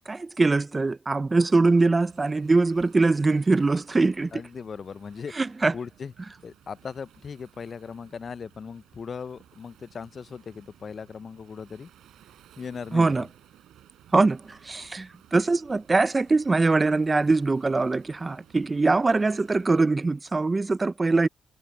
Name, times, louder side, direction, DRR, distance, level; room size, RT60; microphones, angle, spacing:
voice 1, 0.1-4.3 5.3-5.7 12.9-13.3 14.1-21.3, right 3 dB, 25° right, 0.5 m, -22 dB
Waves surf, 2.0-19.8, right 12 dB, 80° right, 5.5 m, -57 dB
voice 2, 4.3-5.3 5.7-6.1 6.4-11.9 12.6-13.3, left 6 dB, 45° left, 0.4 m, -38 dB
cardioid pair, 90°, 0 cm